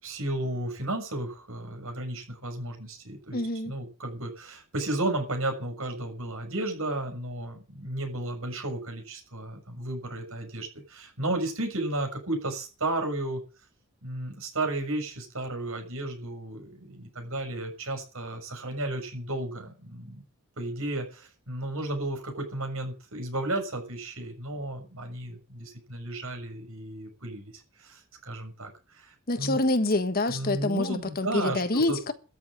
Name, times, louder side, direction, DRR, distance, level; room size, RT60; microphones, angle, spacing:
voice 1, 0.0-3.4 3.6-13.4 14.0-20.2 20.6-29.6 30.3-32.0, right 2 dB, 75° right, 6.8 m, -33 dB
voice 2, 3.3-3.7 29.3-32.1, left 2 dB, 45° left, 1.4 m, -26 dB
13.5 x 7.7 x 9.9 m
head